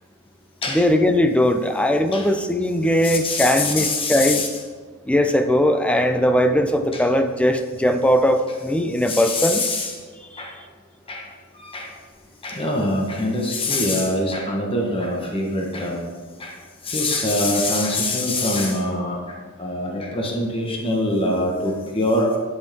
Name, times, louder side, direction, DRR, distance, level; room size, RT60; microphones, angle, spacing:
voice 1, 0.7-4.5 5.1-9.7 10.3-10.4, left 1 dB, 5° left, 7 dB, 0.4 m, -19 dB
voice 2, 3.0-4.5 6.9-7.0 9.0-9.9 10.4-10.5 11.1-11.3 11.6-11.9 12.4-16.0 16.4-16.5 16.8-19.2 19.6-22.4, left 1 dB, 25° left, 0 dB, 1.2 m, -24 dB
10.5 x 6.3 x 3.5 m, 1.5 s
head